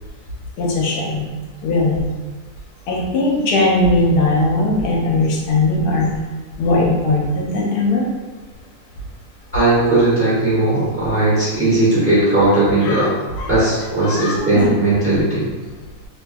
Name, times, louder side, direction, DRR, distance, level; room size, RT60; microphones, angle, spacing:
voice 1, 0.6-1.2 1.6-2.0 2.9-6.1 6.6-8.1 12.8-13.1 13.4-13.5 14.0-14.7, left 2 dB, 80° left, -2 dB, 1.2 m, -18 dB
voice 2, 9.5-13.1 13.5-15.5, right 2 dB, 10° right, -12 dB, 1.0 m, -17 dB
2.8 x 2.6 x 2.2 m, 1.2 s
omnidirectional pair, 1.7 m